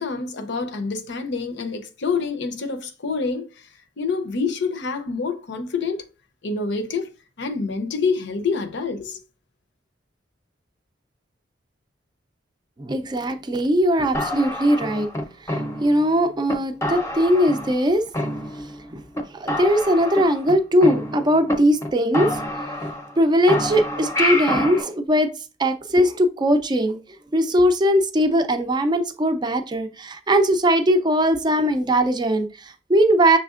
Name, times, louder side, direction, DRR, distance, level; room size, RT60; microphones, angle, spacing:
voice 1, 0.0-3.7 4.0-6.0 6.4-7.1 7.4-9.2, left 4 dB, 65° left, 0.6 m, -27 dB
voice 2, 12.8-15.1 15.5-18.0 18.9-19.0 19.3-22.4 22.6-22.7 23.2-25.3 25.6-27.0 27.3-33.4, equal, 25° right, 0.4 m, -20 dB
sound 1, 14.1-16.1 16.5-16.6 16.8-17.9 18.1-18.9 19.1-19.2 19.5-21.5 21.8-21.9 22.1-23.2 23.5-24.8, left 1 dB, 15° left, 0.7 m, -27 dB
6.2 x 3.3 x 2.4 m
head